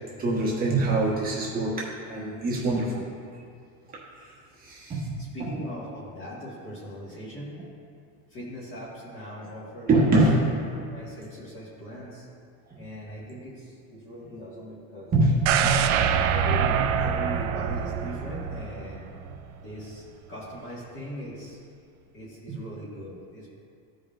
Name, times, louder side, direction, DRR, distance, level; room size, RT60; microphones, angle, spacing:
voice 1, 0.2-3.0 3.9-4.3 4.6-5.2 9.9-10.9 12.7-12.8 15.1-15.8 22.5-22.6, right 2 dB, 20° right, -5 dB, 1.2 m, -24 dB
voice 2, 5.2-7.5 8.3-10.2 10.9-12.3 12.8-15.1 15.9-19.1 19.6-20.0 20.3-21.6 22.1-23.5, equal, 30° left, -7 dB, 1.7 m, -40 dB
sound 1, 15.5-19.4 19.8-19.9, right 8 dB, 45° right, 0.4 m, -25 dB
15.0 x 5.2 x 2.5 m, 2.3 s
cardioid pair, 165°, 41 cm